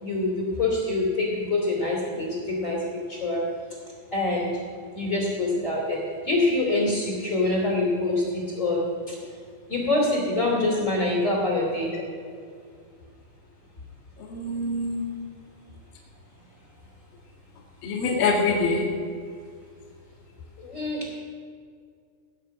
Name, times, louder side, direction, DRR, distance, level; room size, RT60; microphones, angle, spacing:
voice 1, 0.0-2.8 3.2-3.4 4.1-4.5 5.0-6.0 6.3-8.8 9.7-11.9 20.6-21.1, left 2 dB, 25° left, -2 dB, 1.9 m, -25 dB
voice 2, 14.3-15.0 17.8-18.8, left 3 dB, 55° left, -4 dB, 3.1 m, -24 dB
18.0 x 6.4 x 8.4 m, 2.2 s
omnidirectional pair, 5.9 m